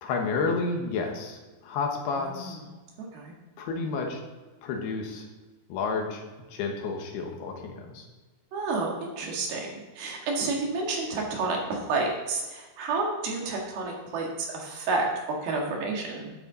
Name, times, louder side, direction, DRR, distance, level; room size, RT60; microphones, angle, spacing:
voice 1, 0.0-2.6 3.6-4.2 4.6-5.3 5.7-6.2 6.5-8.1, left 4 dB, 75° left, 2 dB, 3.2 m, -30 dB
voice 2, 2.2-2.6 3.0-3.3 8.5-9.7 9.9-15.1 15.4-16.3, right 3 dB, 65° right, -1 dB, 3.6 m, -30 dB
12.0 x 8.7 x 4.0 m, 1.3 s
omnidirectional pair, 4.9 m